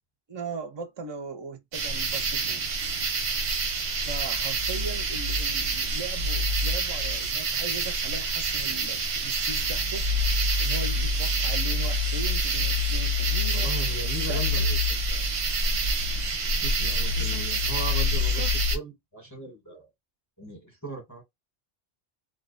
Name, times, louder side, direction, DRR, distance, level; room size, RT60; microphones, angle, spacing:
voice 1, 0.3-2.7 4.0-10.1 10.6-13.7 14.3-14.7 17.2-17.5 18.1-18.6, right 4 dB, 40° right, 0.4 m, -39 dB
sound 1, 1.7-18.8, right 1 dB, 90° right, 0.9 m, -26 dB
voice 2, 13.5-15.2 16.4-19.9 20.4-21.2, right 4 dB, 20° left, 0.8 m, -38 dB
2.4 x 2.2 x 2.4 m
omnidirectional pair, 1.1 m